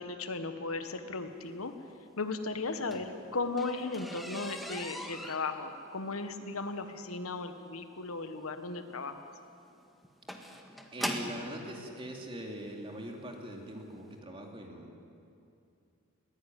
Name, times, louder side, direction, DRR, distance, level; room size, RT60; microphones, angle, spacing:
voice 1, 0.0-1.7 2.2-9.3, left 3 dB, 85° left, 8 dB, 1.4 m, -36 dB
sound 1, 2.6-11.5 12.4-12.5 13.1-13.3 13.6-13.7 14.0-14.1, equal, ahead, 1.6 m, -42 dB
voice 2, 10.4-15.0, equal, 25° right, 1 dB, 2.7 m, -42 dB
20.5 x 16.5 x 9.2 m, 2.6 s
head